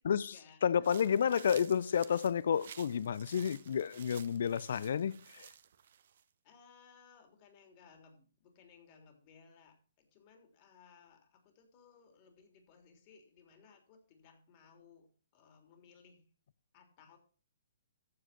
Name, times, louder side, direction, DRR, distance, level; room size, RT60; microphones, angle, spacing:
voice 1, 0.0-1.0 6.4-15.1 15.3-16.3 16.7-17.2, left 6 dB, 40° left, 3.4 m, -61 dB
voice 2, 0.6-5.4, left 7 dB, 65° left, 0.5 m, -31 dB
sound 1, 0.8-6.2, right 8 dB, 60° right, 0.9 m, -54 dB
14.5 x 5.1 x 6.0 m
hypercardioid pair, 130°, 0 cm